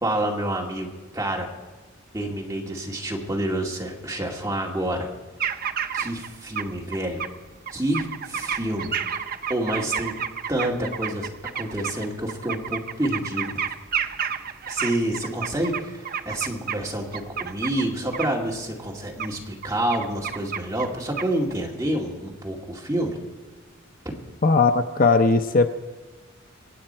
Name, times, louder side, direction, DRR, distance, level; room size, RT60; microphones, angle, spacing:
voice 1, 0.0-1.5 2.1-5.1 5.9-7.2 7.7-9.0 9.5-10.1 10.5-13.6 14.7-23.2, right 1 dB, 15° right, -1 dB, 2.3 m, -28 dB
sound 1, 5.4-6.3 6.6-7.3 7.7-16.8 17.1-17.8 18.1-18.3 19.2-19.3 19.6-20.9 21.2-21.5, right 7 dB, 45° right, 0.6 m, -30 dB
voice 2, 24.4-25.7, left 3 dB, 45° left, 8 dB, 0.6 m, -18 dB
25.0 x 8.8 x 4.5 m, 1.3 s
head